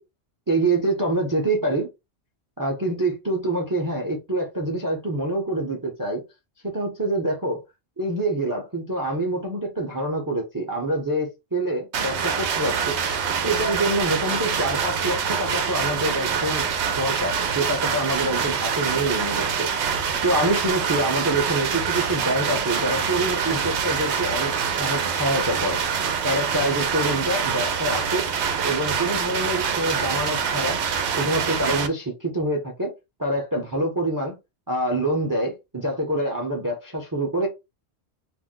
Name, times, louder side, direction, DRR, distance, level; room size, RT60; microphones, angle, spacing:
voice 1, 0.5-1.9 2.6-6.2 6.6-7.6 8.0-13.0 13.4-16.7 17.0-28.3 28.6-30.8 31.1-32.9 33.2-34.3 34.7-37.5, right 1 dB, 25° right, 0.5 m, -26 dB
sound 1, 11.9-31.9, right 6 dB, 85° right, 0.9 m, -25 dB
2.6 x 2.0 x 3.6 m
omnidirectional pair, 1.1 m